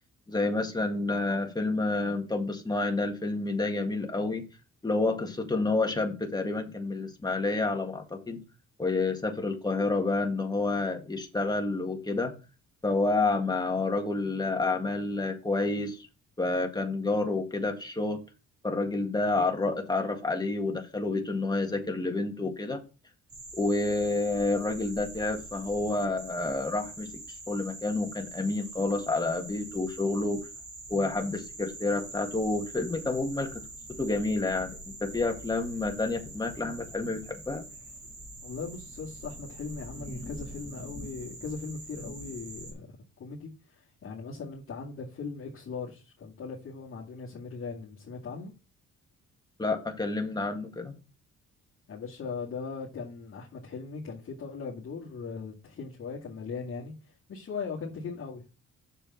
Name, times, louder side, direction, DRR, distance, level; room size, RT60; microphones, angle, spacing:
voice 1, 0.3-4.4 4.8-8.4 8.8-12.3 12.8-16.1 16.4-18.2 18.6-22.8 23.5-27.1 27.5-30.4 30.9-33.6 34.0-37.6 49.6-50.9, left 3 dB, 15° left, 1.8 m, -29 dB
sound 1, 23.3-42.7, right 1 dB, 50° right, 4.3 m, -44 dB
voice 2, 38.4-42.9 43.2-48.5 51.9-58.5, left 5 dB, 45° left, 2.1 m, -39 dB
6.9 x 6.9 x 4.2 m
cardioid pair, 90°, 30 cm